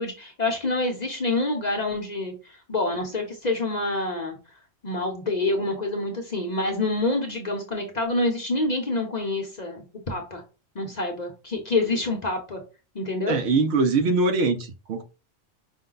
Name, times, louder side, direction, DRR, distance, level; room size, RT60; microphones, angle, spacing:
voice 1, 0.0-4.4 4.8-10.4 10.7-12.6 12.9-13.3, left 2 dB, 40° left, 0.8 m, -27 dB
voice 2, 13.3-15.0, right 3 dB, 65° right, 0.9 m, -22 dB
5.2 x 2.2 x 3.8 m
omnidirectional pair, 1.3 m